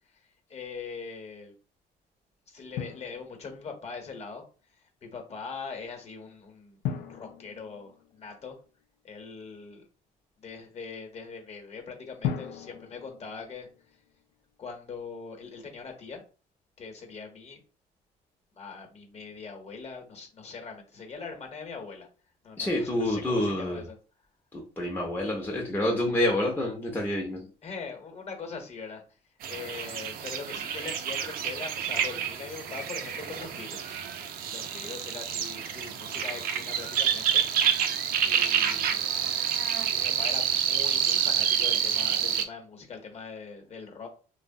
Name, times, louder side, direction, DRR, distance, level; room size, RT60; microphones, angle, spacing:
voice 1, 0.1-1.5 2.5-4.4 4.7-8.6 9.0-9.9 10.4-13.7 14.6-16.2 16.8-17.6 18.5-22.1 22.4-24.0 27.6-29.0 29.5-34.0 34.5-39.1 39.9-44.1, left 5 dB, 40° left, 3 dB, 0.9 m, -42 dB
Drum, 2.8-3.8 6.8-8.7 12.2-14.2, left 8 dB, 85° left, 0.4 m, -37 dB
voice 2, 22.6-23.8 24.5-27.4, left 1 dB, 10° left, -1 dB, 0.5 m, -28 dB
sound 1, 29.4-42.4, right 8 dB, 60° right, 0.4 m, -28 dB
2.9 x 2.0 x 2.6 m, 0.36 s
cardioid pair, 110°, 17 cm